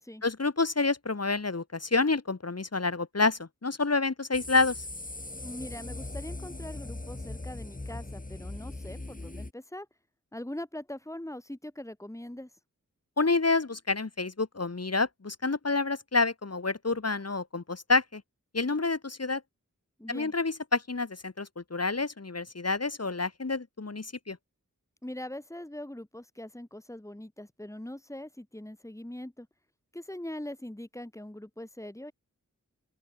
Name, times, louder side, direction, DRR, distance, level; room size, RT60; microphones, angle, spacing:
voice 1, 0.2-4.9 13.2-18.2 18.5-19.4 20.1-24.4, left 3 dB, 50° left, 3.6 m, -28 dB
sound 1, 4.3-9.5, left 2 dB, 25° left, 2.9 m, -40 dB
voice 2, 5.4-9.9 10.3-12.5 20.0-20.3 25.0-29.5 29.9-32.1, left 1 dB, 10° left, 3.5 m, -42 dB
open air
wide cardioid pair, 65°, 32 cm